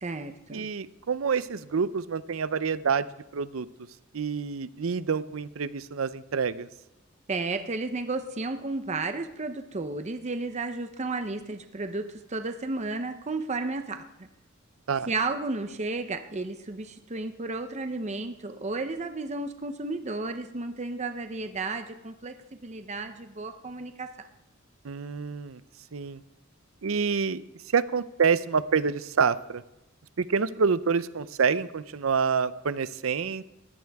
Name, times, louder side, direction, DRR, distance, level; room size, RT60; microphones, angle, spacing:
voice 1, 0.0-0.7 7.3-14.3 15.1-24.3, right 3 dB, 35° right, 8 dB, 0.7 m, -33 dB
voice 2, 0.5-3.1 3.3-3.7 4.1-6.7 14.9-15.1 24.8-25.6 25.9-26.2 26.8-27.4 27.7-29.6 30.2-33.4, right 5 dB, 85° right, 16 dB, 0.6 m, -27 dB
20.0 x 16.0 x 3.5 m, 0.92 s
head